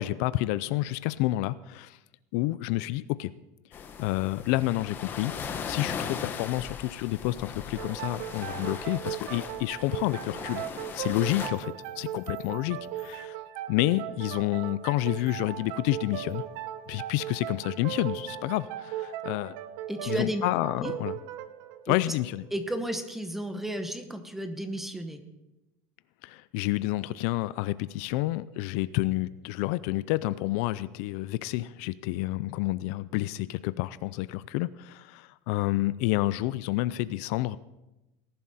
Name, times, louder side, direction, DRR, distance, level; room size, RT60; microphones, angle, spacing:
voice 1, 0.0-2.0 2.3-3.3 4.0-5.3 5.7-10.6 10.9-13.4 13.7-16.4 16.9-19.5 20.1-21.1 21.9-22.5 26.2-37.6, left 17 dB, 65° left, 17 dB, 0.4 m, -29 dB
sound 1, 3.7-11.5, left 6 dB, 25° left, 1.0 m, -38 dB
sound 2, 7.8-23.1, right 12 dB, 60° right, 0.8 m, -38 dB
sound 3, 11.5-13.3 14.5-17.2, right 4 dB, 40° right, 3.0 m, -62 dB
voice 2, 19.9-20.4 20.8-20.9 21.9-22.0 22.5-25.2, right 1 dB, 5° right, 8 dB, 1.0 m, -33 dB
18.5 x 11.0 x 4.2 m, 0.98 s
cardioid pair, 175°, 9 cm